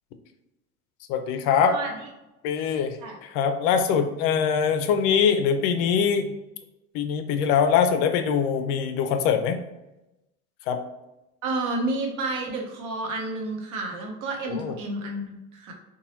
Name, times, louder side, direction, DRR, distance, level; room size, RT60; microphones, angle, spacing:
voice 1, 1.1-1.7 2.4-6.3 6.9-9.6 10.7-10.8 14.5-14.7, left 7 dB, 60° left, 8 dB, 0.5 m, -23 dB
voice 2, 11.4-15.7, right 2 dB, 45° right, 1 dB, 0.8 m, -30 dB
2.9 x 2.3 x 2.8 m, 0.95 s
hypercardioid pair, 90°, 43 cm